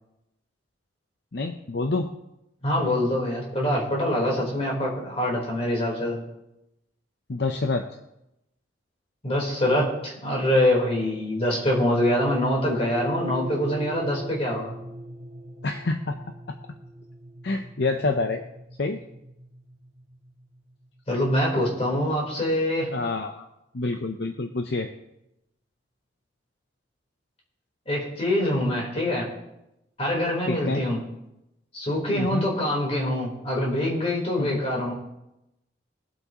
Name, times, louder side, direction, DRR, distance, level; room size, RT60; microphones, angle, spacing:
voice 1, 1.3-2.1 7.3-7.9 15.6-16.2 16.5-16.6 17.4-18.4 18.8-19.0 22.9-23.5 23.7-24.9 30.5-30.8 32.2-32.5 34.4-34.6, left 3 dB, 60° left, 6 dB, 0.7 m, -27 dB
voice 2, 2.6-6.2 9.2-14.7 21.1-22.9 27.9-29.3 30.0-31.0 31.7-34.9, left 1 dB, 30° left, -3 dB, 3.8 m, -24 dB
sound 1, 12.7-21.1, right 1 dB, 30° right, 1.8 m, -40 dB
23.5 x 8.0 x 3.0 m, 0.88 s
head